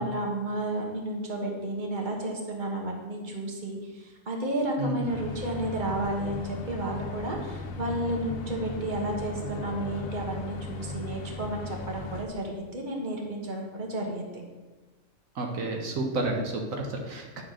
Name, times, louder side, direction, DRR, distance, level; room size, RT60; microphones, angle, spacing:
voice 1, 0.0-14.3, right 1 dB, 35° right, 0 dB, 1.4 m, -32 dB
voice 2, 4.8-5.1 15.4-17.4, right 2 dB, 75° right, 2 dB, 1.4 m, -31 dB
sound 1, 5.1-12.3, left 3 dB, 80° left, 1.3 m, -37 dB
9.9 x 3.8 x 6.3 m, 1.3 s
omnidirectional pair, 1.4 m